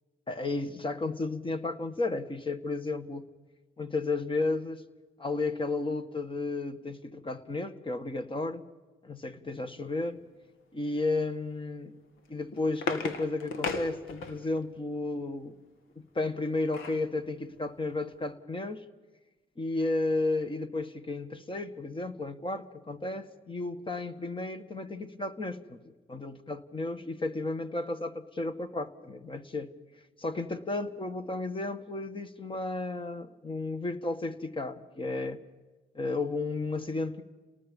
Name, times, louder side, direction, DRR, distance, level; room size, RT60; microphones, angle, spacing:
voice 1, 0.3-3.3 3.8-4.8 5.2-8.6 9.0-10.2 10.7-11.9 12.3-15.5 16.0-18.8 19.6-29.7 30.2-35.4 35.9-37.2, left 2 dB, 25° left, 9 dB, 1.7 m, -33 dB
sound 1, 12.2-14.6 16.2-17.1 17.6-17.7 17.9-18.2, left 4 dB, 85° left, 2.2 m, -36 dB
29.5 x 19.0 x 5.5 m, 1.2 s
cardioid pair, 90°, 20 cm